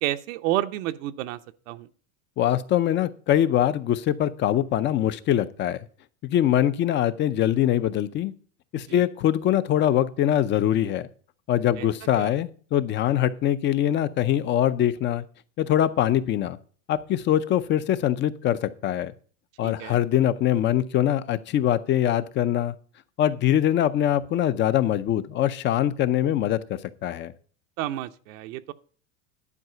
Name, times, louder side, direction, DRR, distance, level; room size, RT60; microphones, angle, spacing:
voice 1, 0.0-1.4 1.7-1.9 8.9-9.0 11.8-11.9 12.2-12.3 19.6-20.0 27.8-28.7, right 14 dB, 70° right, 0.8 m, -30 dB
voice 2, 2.4-5.8 6.2-8.3 8.7-11.1 11.5-15.2 15.6-16.6 16.9-19.1 19.6-22.7 23.2-27.3, left 11 dB, 25° left, 0.5 m, -23 dB
11.0 x 4.8 x 7.8 m
supercardioid pair, 140°, 41 cm